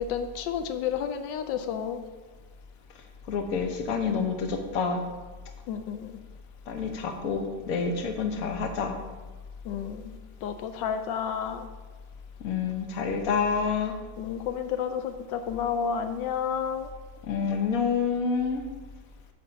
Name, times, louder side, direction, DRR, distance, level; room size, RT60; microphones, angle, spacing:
voice 1, 0.0-2.0 5.7-6.1 9.6-11.7 14.2-16.9, left 7 dB, 90° left, 8 dB, 1.3 m, -31 dB
voice 2, 3.3-5.0 6.7-8.9 12.4-13.9 17.2-18.6, left 5 dB, 55° left, 4 dB, 1.3 m, -28 dB
9.0 x 3.5 x 6.8 m, 1.3 s
omnidirectional pair, 1.9 m